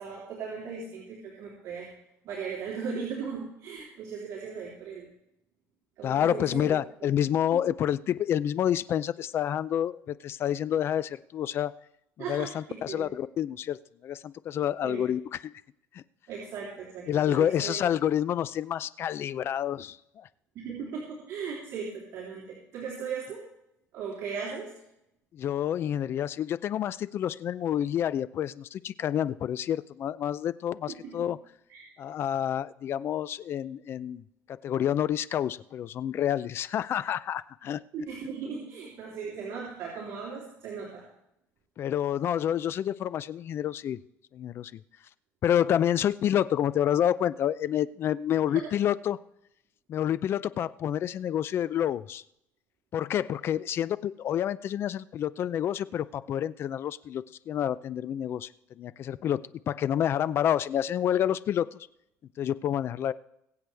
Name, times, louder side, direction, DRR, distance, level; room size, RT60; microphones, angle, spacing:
voice 1, 0.0-1.9 2.2-5.1 6.0-6.8 7.5-7.6 12.2-13.1 14.8-15.0 16.3-17.8 20.6-23.4 23.9-24.7 30.9-31.1 31.7-31.9 37.9-41.1 48.5-48.7, right 6 dB, 60° right, -5 dB, 3.7 m, -37 dB
voice 2, 6.0-11.7 12.3-15.5 15.9-16.0 17.1-20.3 25.3-31.4 32.0-34.2 34.6-37.8 41.8-44.0 44.3-44.8 45.4-49.2 49.9-52.2 52.9-58.5 58.8-61.9 62.4-63.1, left 10 dB, 45° left, 17 dB, 0.5 m, -28 dB
22.5 x 8.0 x 3.5 m, 0.81 s
cardioid pair, 140°, 6 cm